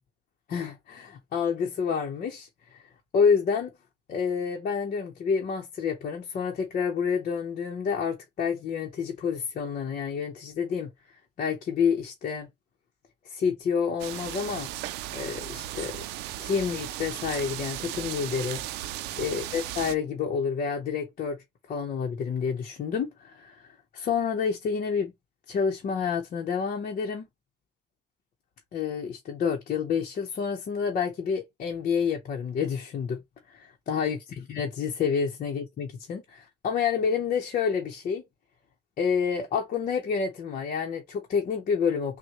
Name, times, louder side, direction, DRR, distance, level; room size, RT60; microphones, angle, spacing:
voice 1, 0.5-2.8 3.1-3.7 4.1-10.9 11.4-12.5 13.3-14.7 15.1-16.0 16.4-18.6 19.2-21.4 21.7-25.1 25.5-27.3 28.7-33.2 33.5-38.2 39.0-42.2, left 6 dB, 50° left, 0.9 m, -29 dB
sound 1, 14.0-19.9, right 14 dB, 90° right, 0.4 m, -36 dB
6.1 x 2.2 x 2.9 m
cardioid pair, 110°, 17 cm